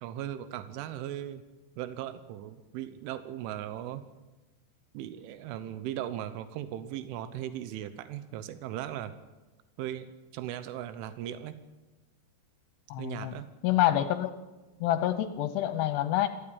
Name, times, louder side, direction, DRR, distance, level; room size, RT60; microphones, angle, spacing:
voice 1, 0.0-1.4 1.8-4.0 5.0-9.1 9.8-10.1 10.3-11.6 13.0-13.5, right 11 dB, 90° right, 12 dB, 3.4 m, -38 dB
voice 2, 12.9-13.3 13.6-14.3 14.8-16.3, left 13 dB, 75° left, 11 dB, 2.6 m, -27 dB
22.5 x 15.0 x 8.8 m, 1.2 s
omnidirectional pair, 5.4 m